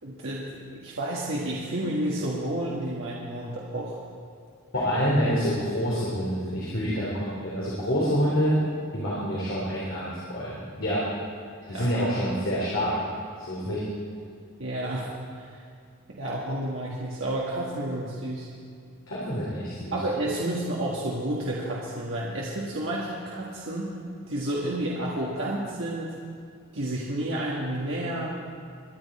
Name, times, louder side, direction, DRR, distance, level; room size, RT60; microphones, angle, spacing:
voice 1, 0.0-4.0 11.6-11.9 14.6-15.6 16.1-18.5 19.9-24.0 24.3-26.1 26.7-28.4, right 1 dB, 60° right, -5 dB, 1.7 m, -31 dB
voice 2, 4.7-8.6 8.9-11.0 11.7-12.9 13.4-13.8 19.1-19.9, equal, 60° left, -7 dB, 3.5 m, -27 dB
23.0 x 10.5 x 4.3 m, 2.3 s
head